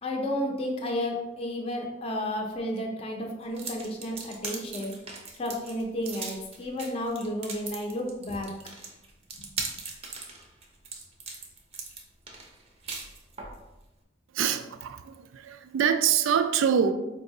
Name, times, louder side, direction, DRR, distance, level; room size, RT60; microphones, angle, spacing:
voice 1, 0.0-4.9 5.4-8.5, left 1 dB, 30° left, 0.5 m, -32 dB
sound 1, 3.5-13.6, right 4 dB, 30° right, 0.5 m, -39 dB
voice 2, 14.3-16.9, right 8 dB, 85° right, 0.3 m, -25 dB
4.6 x 2.6 x 2.6 m
head